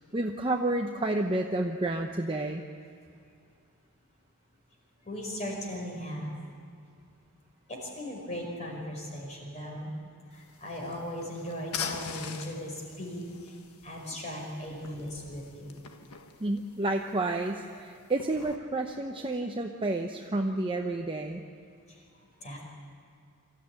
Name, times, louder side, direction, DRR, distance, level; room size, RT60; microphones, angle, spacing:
voice 1, 0.1-2.6 16.4-21.4, right 2 dB, 25° right, 2 dB, 0.8 m, -30 dB
voice 2, 5.1-6.4 7.7-9.9 10.3-13.6 13.8-15.7 19.1-19.2 21.9-22.0 22.4-22.6, equal, 30° left, -1 dB, 5.3 m, -38 dB
sound 1, 10.3-18.6, left 6 dB, 85° left, 1.4 m, -44 dB
24.5 x 14.5 x 9.7 m, 2.4 s
head